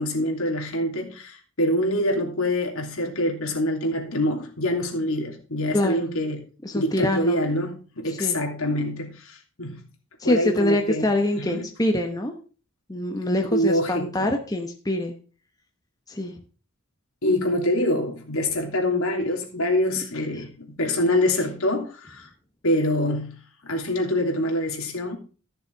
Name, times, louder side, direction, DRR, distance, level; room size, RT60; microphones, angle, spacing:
voice 1, 0.0-6.4 6.7-9.9 10.2-11.7 13.5-14.3 17.2-22.3 22.6-23.4 23.6-25.2, left 1 dB, 80° left, 2 dB, 3.0 m, -25 dB
voice 2, 5.7-6.1 6.6-7.4 8.2-8.4 10.2-12.3 12.9-15.1 16.1-16.3, left 1 dB, 15° left, 3 dB, 1.1 m, -24 dB
14.0 x 6.8 x 4.6 m, 0.38 s
head